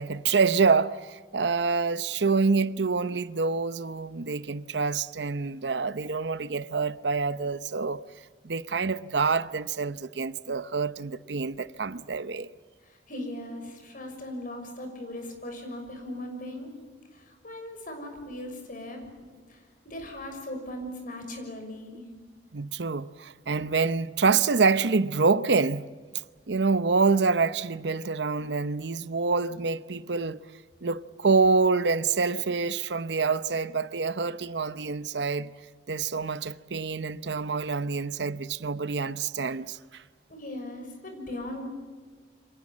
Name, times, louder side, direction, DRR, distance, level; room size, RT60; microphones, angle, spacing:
voice 1, 0.0-8.0 8.4-12.5 22.5-25.9 26.5-30.4 30.8-35.5 35.9-40.0, right 4 dB, 75° right, 0.8 m, -26 dB
voice 2, 12.8-16.8 17.1-19.0 19.5-22.0 40.3-41.6, left 1 dB, 50° left, 6.3 m, -39 dB
28.5 x 25.0 x 7.4 m
head